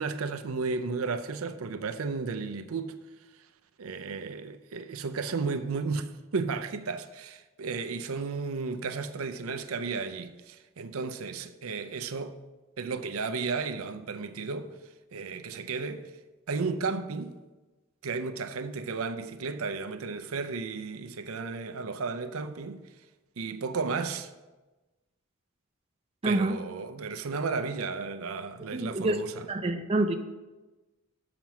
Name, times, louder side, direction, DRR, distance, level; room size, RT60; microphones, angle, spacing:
voice 1, 0.0-2.9 3.8-12.4 12.8-14.8 15.1-16.0 16.5-17.3 18.0-22.8 23.4-24.3 26.2-29.5, right 4 dB, 85° right, 0.6 m, -33 dB
voice 2, 26.2-26.6 28.7-30.1, right 2 dB, 25° right, 0.5 m, -27 dB
7.3 x 5.9 x 6.1 m
head